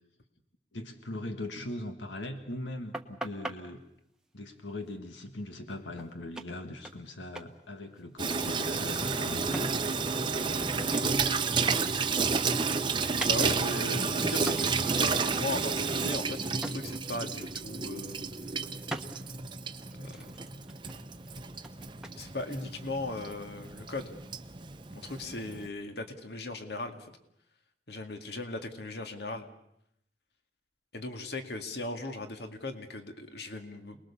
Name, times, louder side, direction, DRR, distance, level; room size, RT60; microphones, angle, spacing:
voice 1, 0.7-3.8 4.3-9.7 10.3-12.0 13.6-14.6, left 1 dB, 85° left, 6 dB, 1.8 m, -41 dB
sound 1, 2.9-3.6 5.7-5.8 6.0-6.1 6.4-7.1 7.4-7.6 7.8-10.1 10.4-12.1 12.4-13.9 14.5-14.7 15.1-15.3 15.6-16.8 17.2-17.4 17.7-18.3 18.9-19.1 19.6-22.2, right 1 dB, 5° right, 1.2 m, -42 dB
Water tap faucet / Sink (filling or washing), 8.2-25.7, right 4 dB, 25° right, 0.9 m, -31 dB
voice 2, 13.3-18.3 20.0-20.3 22.2-24.1 24.9-27.1 27.9-29.5 30.9-34.0, left 2 dB, 60° left, 6 dB, 2.2 m, -38 dB
28.5 x 20.5 x 7.0 m, 0.77 s
head